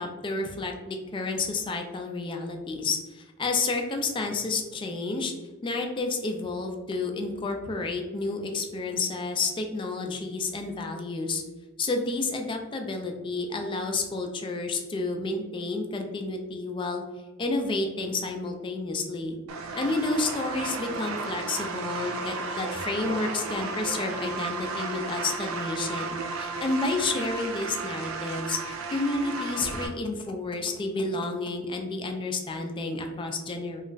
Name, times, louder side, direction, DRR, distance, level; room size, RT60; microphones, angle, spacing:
voice 1, 0.0-5.3 5.6-11.4 11.8-17.0 17.4-19.4 19.8-33.8, left 3 dB, 25° left, 3 dB, 0.3 m, -30 dB
sound 1, 19.5-29.9, right 3 dB, 80° right, 0.4 m, -34 dB
2.3 x 2.1 x 3.8 m, 1.2 s
head